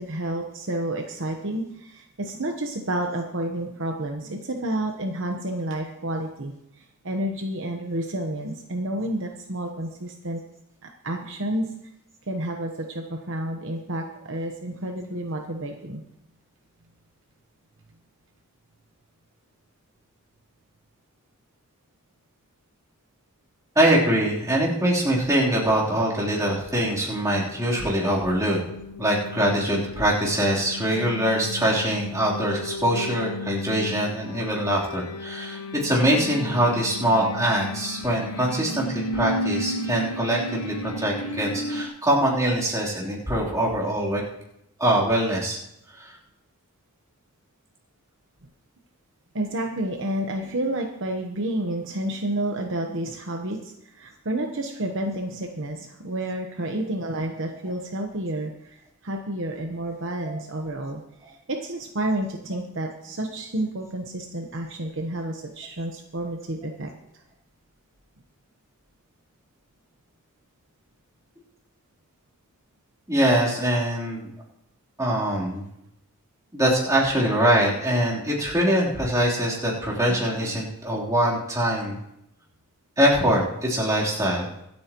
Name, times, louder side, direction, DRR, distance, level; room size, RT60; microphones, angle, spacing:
voice 1, 0.0-6.5 7.0-10.4 10.8-11.7 12.3-16.0 49.3-58.8 59.0-61.0 61.3-66.9, right 1 dB, 60° right, 2 dB, 1.1 m, -30 dB
voice 2, 23.7-28.6 29.0-44.2 44.8-45.6 46.0-46.2 60.2-60.3 73.1-74.3 75.0-75.6 76.5-82.0 83.0-84.6, right 1 dB, 15° right, -6 dB, 3.4 m, -23 dB
sound 1, 26.5-41.9, left 1 dB, 90° left, 1.3 m, -35 dB
25.0 x 8.7 x 3.0 m, 0.81 s
head